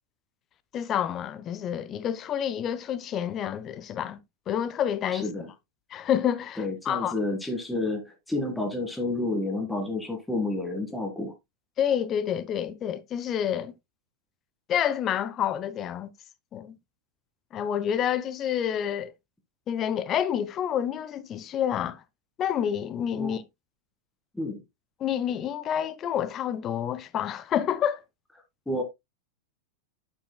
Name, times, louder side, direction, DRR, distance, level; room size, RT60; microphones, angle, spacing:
voice 1, 0.7-4.2 4.5-5.3 5.9-7.1 11.8-13.7 14.7-16.1 16.5-16.8 17.5-19.1 19.7-22.0 22.4-23.4 25.0-28.0, left 9 dB, 30° left, 0.7 m, -28 dB
voice 2, 5.1-5.5 6.6-11.3 23.2-23.4 24.3-24.6 28.7-28.8, left 2 dB, 5° left, 1.9 m, -30 dB
8.5 x 8.3 x 2.2 m
figure-of-eight pair, 90°, 0 cm